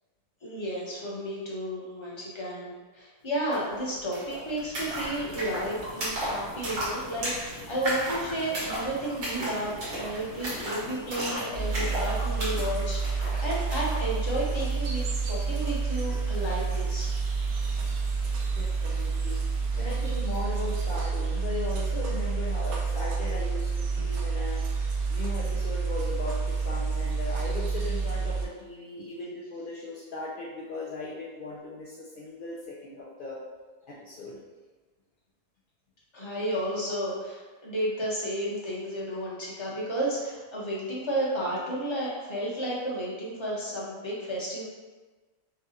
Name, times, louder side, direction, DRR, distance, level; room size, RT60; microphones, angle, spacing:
voice 1, 0.4-17.1 36.1-44.6, right 1 dB, 20° left, -6 dB, 0.8 m, -32 dB
sound 1, 3.5-3.6 3.8-14.0, right 1 dB, 85° right, 2.0 m, -34 dB
sound 2, 4.8-20.4, left 1 dB, 80° left, 1.6 m, -53 dB
sound 3, 11.5-28.4, right 4 dB, 70° right, 1.1 m, -29 dB
voice 2, 18.5-24.6 25.1-33.4 33.9-34.4, left 3 dB, 65° left, -6 dB, 0.5 m, -38 dB
6.2 x 2.4 x 2.8 m, 1.3 s
omnidirectional pair, 1.7 m